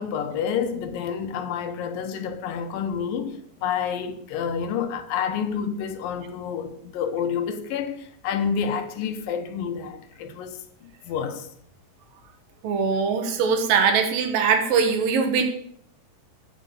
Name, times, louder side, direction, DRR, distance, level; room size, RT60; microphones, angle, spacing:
voice 1, 0.0-11.5, left 7 dB, 85° left, 2.8 m, -29 dB
voice 2, 12.6-15.4, right 6 dB, 85° right, 3.2 m, -21 dB
9.6 x 8.6 x 6.8 m
omnidirectional pair, 3.9 m